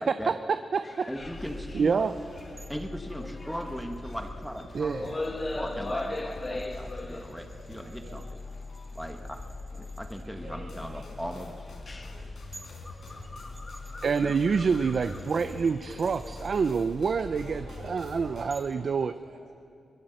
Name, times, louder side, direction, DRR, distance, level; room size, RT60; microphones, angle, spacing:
voice 1, 0.0-0.4 1.1-2.0 2.7-5.0 5.5-8.2 8.9-9.4 10.0-11.5, equal, ahead, 4 dB, 1.3 m, -38 dB
voice 2, 0.7-1.1 1.7-2.1 4.7-5.1 14.0-19.1, right 5 dB, 50° right, 10 dB, 0.5 m, -27 dB
sound 1, 0.8-4.6 4.9-7.8 8.5-8.6 9.5-9.8 10.4-11.1 11.6-17.7, left 2 dB, 25° left, 1.9 m, -40 dB
sound 2, 1.2-18.4, left 3 dB, 70° left, 5.2 m, -43 dB
sound 3, 2.6-10.3 12.1-12.2 12.5-16.9 18.5-18.8, right 2 dB, 25° right, 2.4 m, -56 dB
voice 3, 10.1-11.5 12.1-12.5 17.3-19.5, right 3 dB, 75° right, 1 dB, 5.3 m, -50 dB
23.5 x 21.5 x 7.9 m, 2.5 s
wide cardioid pair, 150°, 0 cm